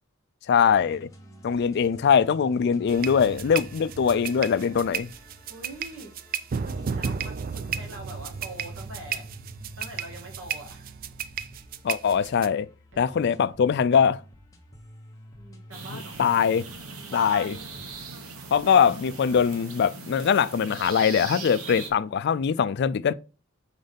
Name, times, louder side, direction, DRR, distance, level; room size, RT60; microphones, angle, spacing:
voice 1, 0.5-1.1 1.4-5.1 11.8-12.7 13.0-14.2 16.2-16.6 17.1-17.6 18.5-23.1, left 7 dB, 50° left, 0.3 m, -22 dB
sound 1, 0.7-19.4, equal, 15° left, 0.9 m, -50 dB
voice 2, 1.2-1.6 5.4-9.3 9.8-10.9 12.9-13.4 15.4-16.2 17.1-17.6 21.7-22.2, right 1 dB, 60° right, 2.2 m, -43 dB
sound 2, 2.9-12.5, right 6 dB, 40° right, 0.3 m, -34 dB
sound 3, 15.7-21.9, right 4 dB, 85° right, 1.1 m, -40 dB
5.1 x 4.0 x 5.2 m
head